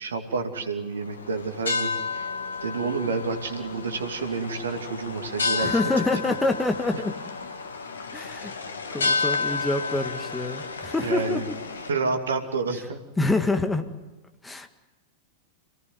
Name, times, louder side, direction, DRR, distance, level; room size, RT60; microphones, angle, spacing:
voice 1, 0.0-2.3 2.6-5.8 11.0-11.4 11.9-13.0, right 4 dB, 70° right, 6 dB, 2.5 m, -29 dB
sound 1, 1.0-11.9, left 4 dB, 70° left, 1.9 m, -31 dB
voice 2, 5.6-7.1 8.1-8.5 8.9-11.6 13.2-13.9 14.4-14.7, left 2 dB, 10° left, 7 dB, 1.8 m, -26 dB
27.5 x 18.5 x 9.5 m, 1.1 s
figure-of-eight pair, 90°, 0 cm